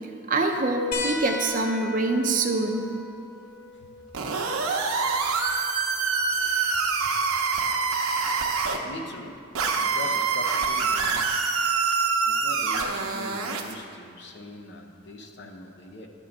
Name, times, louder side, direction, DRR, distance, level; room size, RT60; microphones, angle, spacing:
voice 1, 0.3-2.9, right 2 dB, 40° right, 4 dB, 0.6 m, -25 dB
sound 1, 0.9-6.0 7.5-7.6 9.3-9.4, left 2 dB, 85° left, 0.8 m, -37 dB
sound 2, 4.1-8.8 9.5-13.7, right 5 dB, 85° right, 0.8 m, -25 dB
voice 2, 8.8-9.4 9.8-11.3 12.0-16.1, left 2 dB, 55° left, 3 dB, 0.7 m, -41 dB
9.8 x 3.8 x 7.1 m, 2.5 s
head